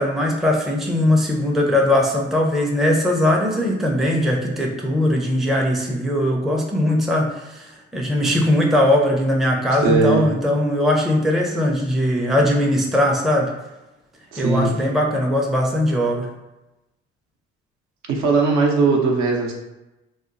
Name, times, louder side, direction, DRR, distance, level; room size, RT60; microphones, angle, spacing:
voice 1, 0.0-13.5 14.4-16.3, left 1 dB, ahead, -1 dB, 0.4 m, -20 dB
voice 2, 9.8-10.2 14.3-14.7 18.1-19.5, right 4 dB, 60° right, 0 dB, 0.7 m, -19 dB
2.8 x 2.0 x 2.5 m, 0.98 s
hypercardioid pair, 65°, 31 cm